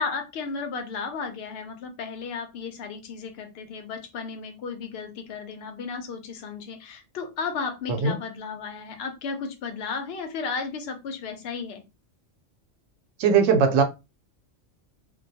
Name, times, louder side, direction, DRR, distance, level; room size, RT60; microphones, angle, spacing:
voice 1, 0.0-11.8, left 5 dB, 60° left, 0.8 m, -34 dB
voice 2, 13.2-13.8, right 5 dB, 90° right, 1.0 m, -19 dB
2.3 x 2.2 x 2.6 m
omnidirectional pair, 1.3 m